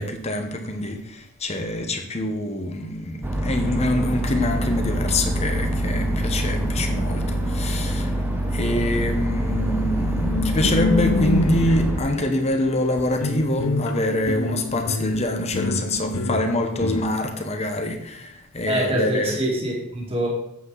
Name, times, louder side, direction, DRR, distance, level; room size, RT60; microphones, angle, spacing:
voice 1, 0.0-8.2 8.5-19.4, left 1 dB, 30° left, 5 dB, 1.0 m, -25 dB
sound 1, 3.2-12.0, right 1 dB, 10° right, 1.0 m, -25 dB
sound 2, 10.2-17.0, left 3 dB, 75° left, 0.8 m, -27 dB
voice 2, 18.7-20.3, right 1 dB, 25° right, -3 dB, 1.9 m, -24 dB
8.6 x 7.7 x 3.9 m, 0.82 s
head